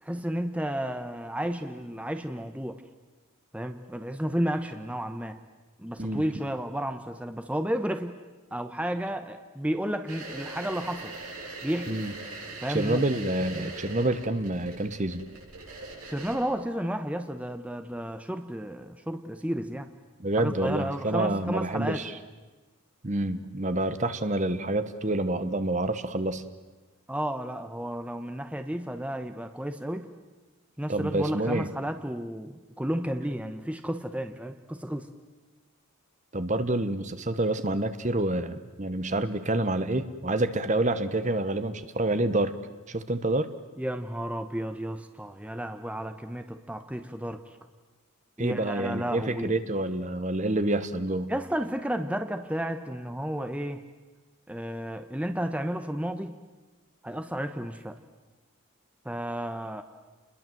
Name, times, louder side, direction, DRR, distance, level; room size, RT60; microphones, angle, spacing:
voice 1, 0.0-2.8 3.5-5.4 5.8-8.2 8.5-11.1 11.6-11.9 12.6-13.0 16.1-19.9 20.4-22.0 27.1-30.1 30.8-35.1 43.8-47.4 48.4-49.5 51.3-53.8 54.5-56.3 57.0-58.0 59.0-59.8, equal, 5° right, 8 dB, 0.9 m, -32 dB
sound 1, 10.1-16.4, right 2 dB, 85° right, 7.4 m, -41 dB
voice 2, 12.7-15.3 20.2-22.1 23.0-26.4 30.9-31.7 36.3-42.5 42.9-43.5 48.4-51.3, right 1 dB, 35° right, 11 dB, 1.1 m, -28 dB
29.0 x 21.5 x 7.8 m, 1.2 s
head